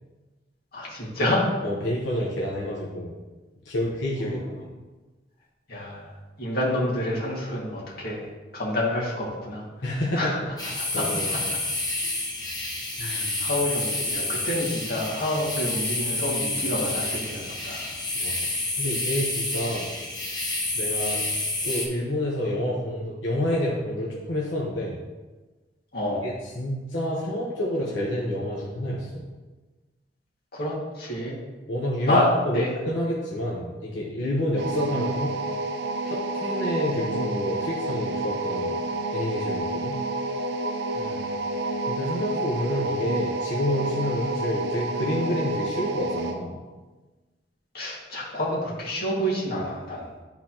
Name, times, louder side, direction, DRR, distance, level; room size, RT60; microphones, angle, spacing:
voice 1, 0.7-1.4 4.2-4.4 5.7-6.1 6.4-8.3 8.5-10.4 10.8-11.4 13.0-17.9 19.6-19.8 25.9-26.3 30.5-31.4 32.1-32.3 32.5-32.7 40.9-41.2 47.7-50.1, left 1 dB, 55° left, -5 dB, 2.0 m, -28 dB
voice 2, 1.6-3.2 3.6-4.7 9.8-10.5 10.9-11.4 13.0-13.5 18.1-18.5 18.8-19.9 20.7-21.2 21.6-25.0 26.2-29.2 31.7-35.3 36.0-38.8 39.1-40.0 41.9-46.6, left 1 dB, 85° left, -4 dB, 1.0 m, -28 dB
sound 1, 10.6-21.9, left 2 dB, 20° left, 1.2 m, -29 dB
sound 2, 34.6-46.4, right 2 dB, 65° right, 0.6 m, -29 dB
12.0 x 4.0 x 2.9 m, 1.2 s
head